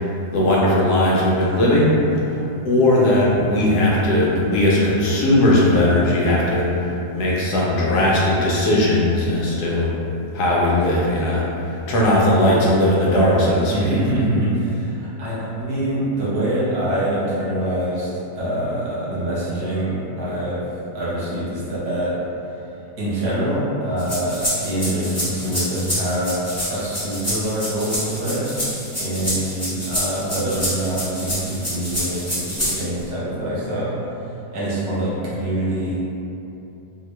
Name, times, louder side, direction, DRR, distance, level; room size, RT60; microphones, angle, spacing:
voice 1, 0.3-2.0 2.3-2.4 2.6-6.7 7.1-9.9 10.3-11.5 11.9-13.9, left 1 dB, 75° left, -5 dB, 1.1 m, -18 dB
voice 2, 12.2-12.5 13.7-20.6 20.9-22.2 23.0-28.6 29.0-34.1 34.5-35.9, right 1 dB, 70° right, -8 dB, 1.4 m, -25 dB
sound 1, 24.0-33.0, equal, 10° left, 0.8 m, -27 dB
3.0 x 2.8 x 3.1 m, 2.9 s
omnidirectional pair, 1.8 m